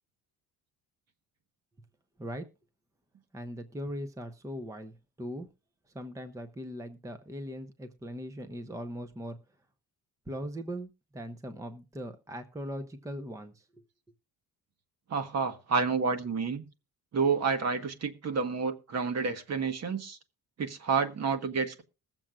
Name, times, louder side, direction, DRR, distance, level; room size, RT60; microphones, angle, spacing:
voice 1, 3.3-5.5 5.9-9.4 10.3-13.6, equal, 10° right, 0.8 m, -40 dB
voice 2, 15.1-16.6 17.1-20.2 20.6-21.8, right 5 dB, 45° right, 1.4 m, -29 dB
21.5 x 7.4 x 2.4 m
cardioid pair, 160°, 37 cm